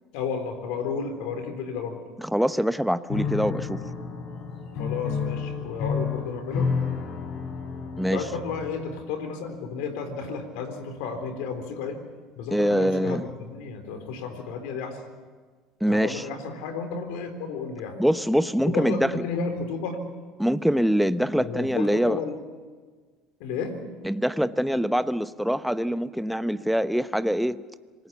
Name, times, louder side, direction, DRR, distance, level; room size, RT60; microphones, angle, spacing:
voice 1, 0.1-2.0 4.8-6.7 8.1-12.0 12.4-15.0 15.9-18.0 18.7-20.0 21.4-22.3 23.4-23.8, left 5 dB, 75° left, 7 dB, 3.8 m, -32 dB
voice 2, 2.2-3.8 8.0-8.2 12.5-13.3 15.8-16.3 18.0-19.2 20.4-22.2 24.0-27.6, equal, ahead, 12 dB, 0.9 m, -24 dB
Piano, 3.1-9.0, left 5 dB, 60° left, 5.4 m, -31 dB
27.0 x 19.5 x 7.2 m, 1.5 s
supercardioid pair, 85°, 0 cm